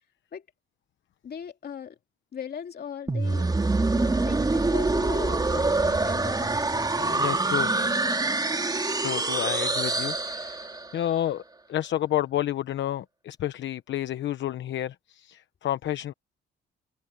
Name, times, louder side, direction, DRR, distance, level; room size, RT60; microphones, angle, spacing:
voice 1, 1.2-1.9 2.3-3.5 3.8-6.7 7.0-7.2 7.7-8.2, left 7 dB, 50° left, 2.9 m, -39 dB
sound 1, 3.1-11.0, right 3 dB, 20° right, 3.3 m, -25 dB
voice 2, 7.2-7.7 9.0-11.4 11.7-16.1, left 12 dB, 70° left, 1.0 m, -30 dB
cardioid pair, 90°, 20 cm